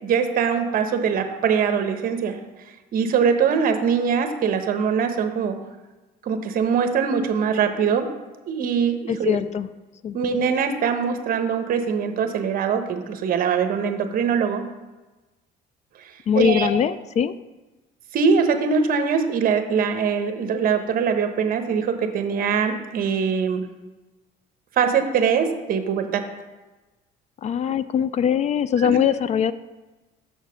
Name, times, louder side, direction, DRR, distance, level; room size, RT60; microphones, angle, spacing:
voice 1, 0.0-2.4 2.9-5.6 6.2-8.1 8.5-9.4 10.1-14.7 16.3-16.7 18.1-23.7 24.8-26.2 28.8-29.2, right 6 dB, 60° right, 7 dB, 1.0 m, -22 dB
voice 2, 9.1-9.7 10.0-10.2 16.3-17.3 27.4-29.5, left 8 dB, 45° left, 15 dB, 0.4 m, -21 dB
6.5 x 5.8 x 6.3 m, 1.2 s
cardioid pair, 110°, 17 cm